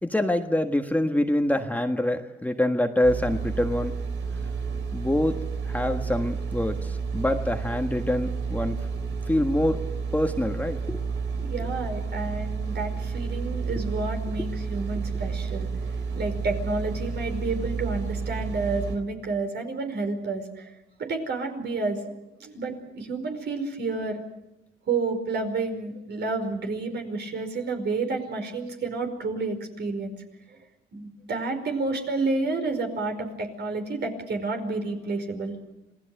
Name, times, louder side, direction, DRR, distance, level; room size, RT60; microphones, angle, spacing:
voice 1, 0.0-4.0 4.9-5.4 5.6-8.9 9.3-9.8 10.1-11.0 13.7-13.8 14.4-14.5, left 1 dB, 10° left, 5 dB, 1.5 m, -25 dB
sound 1, 3.0-19.0, right 5 dB, 75° right, 4.0 m, -31 dB
voice 2, 11.4-15.7 16.1-20.7 21.0-22.1 22.4-24.2 24.9-30.2 30.9-35.5, right 3 dB, 60° right, 5 dB, 5.1 m, -30 dB
27.0 x 18.5 x 7.9 m, 0.89 s
cardioid pair, 90°, 20 cm